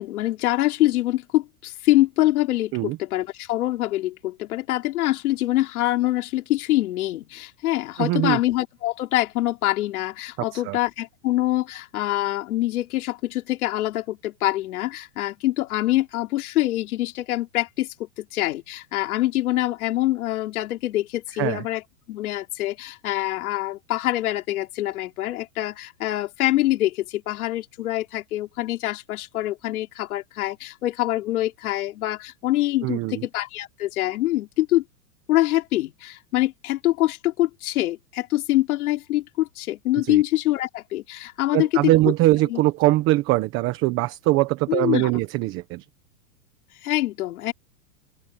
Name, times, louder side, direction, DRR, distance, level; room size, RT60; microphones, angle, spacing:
voice 1, 0.0-21.8 22.1-34.8 35.3-41.9 42.5-42.6 44.7-45.1 46.8-47.5, left 16 dB, 60° left, 4.1 m, -25 dB
voice 2, 8.0-8.4 10.4-10.8 21.4-21.6 32.8-33.2 40.0-40.2 41.5-45.8, right 18 dB, 25° right, 1.1 m, -22 dB
open air
supercardioid pair, 155°, 48 cm